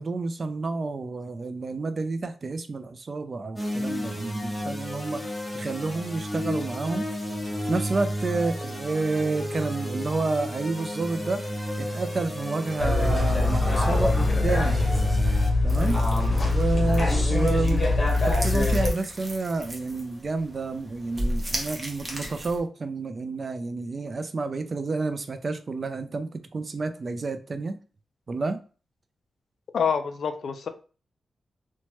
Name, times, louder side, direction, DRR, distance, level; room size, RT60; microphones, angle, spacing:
voice 1, 0.0-5.2 5.5-7.1 7.7-11.4 11.8-14.8 15.6-16.0 16.5-17.9 18.3-27.8 28.3-28.6, right 3 dB, 45° right, 0.4 m, -29 dB
sound 1, 3.6-15.5, equal, 5° left, 0.7 m, -32 dB
sound 2, 12.8-18.9, left 2 dB, 40° left, 0.8 m, -23 dB
sound 3, 15.7-22.6, right 1 dB, 25° right, 0.8 m, -36 dB
voice 2, 29.7-30.7, left 6 dB, 70° left, 0.3 m, -26 dB
3.0 x 2.2 x 2.9 m
cardioid pair, 85°, 0 cm